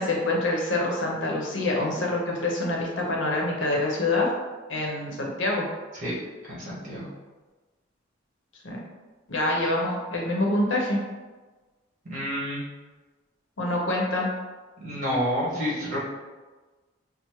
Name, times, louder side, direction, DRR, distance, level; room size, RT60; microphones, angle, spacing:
voice 1, 0.0-4.3 4.7-5.7 8.6-8.8 9.3-11.0 13.6-14.3, left 2 dB, 70° left, -1 dB, 0.8 m, -26 dB
voice 2, 6.5-7.0 12.1-12.6 14.8-16.0, equal, 40° right, -8 dB, 1.5 m, -29 dB
5.6 x 2.0 x 3.0 m, 1.3 s
head